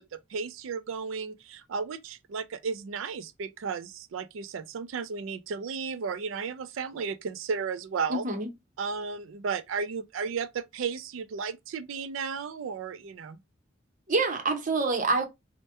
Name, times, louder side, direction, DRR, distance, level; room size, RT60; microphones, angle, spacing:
voice 1, 0.0-8.2 8.8-13.4, right 5 dB, 90° right, 0.4 m, -34 dB
voice 2, 8.1-8.5 14.1-15.3, right 3 dB, 45° right, 0.7 m, -26 dB
2.9 x 2.1 x 3.2 m
head